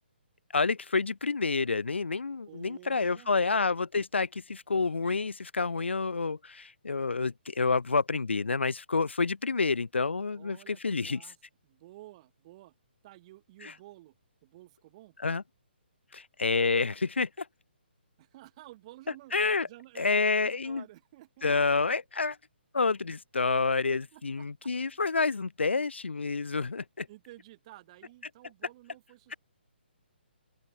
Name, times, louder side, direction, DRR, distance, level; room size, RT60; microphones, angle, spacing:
voice 1, 0.5-11.2 13.6-13.7 15.2-15.4 16.1-17.5 19.3-19.7 20.0-20.8 21.4-22.4 22.7-27.1, left 4 dB, 90° left, 0.6 m, -28 dB
voice 2, 2.5-3.3 10.3-11.4 11.6-12.7 13.0-14.2 14.4-15.2 18.2-19.3 19.6-21.8 23.8-24.5 24.8-25.0 27.1-29.4, right 17 dB, 35° right, 2.3 m, -52 dB
open air
hypercardioid pair, 145°, 6 cm